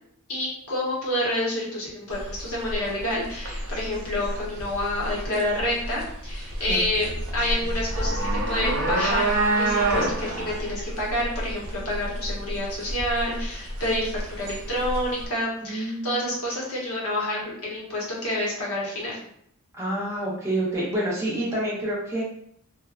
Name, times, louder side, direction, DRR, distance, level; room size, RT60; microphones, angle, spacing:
voice 1, 0.3-8.2 8.5-19.2, left 1 dB, 75° left, -5 dB, 0.9 m, -28 dB
sound 1, 2.1-15.3, right 2 dB, 60° right, 0.5 m, -28 dB
voice 2, 15.7-16.2 19.7-22.2, right 1 dB, 10° right, -6 dB, 0.6 m, -28 dB
2.5 x 2.2 x 2.4 m, 0.70 s
head